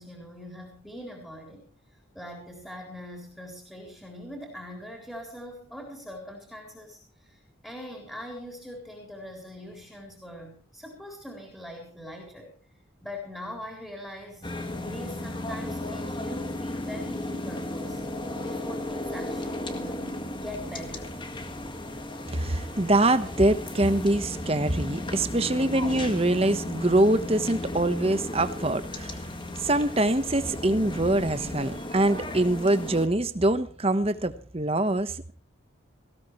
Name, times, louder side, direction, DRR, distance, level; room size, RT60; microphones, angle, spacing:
voice 1, 0.0-1.7 2.1-12.5 13.0-14.5 14.8-18.0 18.4-21.1, left 1 dB, 5° left, 4.1 m, -42 dB
sound 1, 14.4-33.1, left 1 dB, 25° left, 1.7 m, -35 dB
voice 2, 22.3-29.3 29.6-35.3, right 1 dB, 30° right, 1.2 m, -24 dB
19.0 x 16.5 x 3.2 m
head